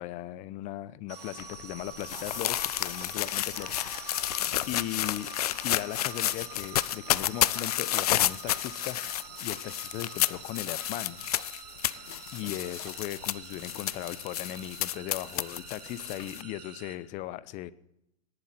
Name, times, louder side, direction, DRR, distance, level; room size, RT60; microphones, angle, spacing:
voice 1, 0.0-4.2 4.6-5.3 5.6-9.0 9.4-11.2 12.3-17.7, left 14 dB, 35° left, 17 dB, 0.8 m, -38 dB
sound 1, 1.1-1.7 2.1-3.1 3.3-3.4 3.6-4.7 5.3-6.3 6.8-6.9 7.1-11.4 11.8-12.0 12.5-12.9, right 6 dB, 40° right, 5.9 m, -54 dB
sound 2, 1.1-17.0, right 7 dB, 85° right, 2.0 m, -46 dB
sound 3, 1.4-16.4, left 13 dB, 75° left, 0.5 m, -31 dB
19.0 x 11.0 x 4.4 m, 0.81 s
hypercardioid pair, 120°, 20 cm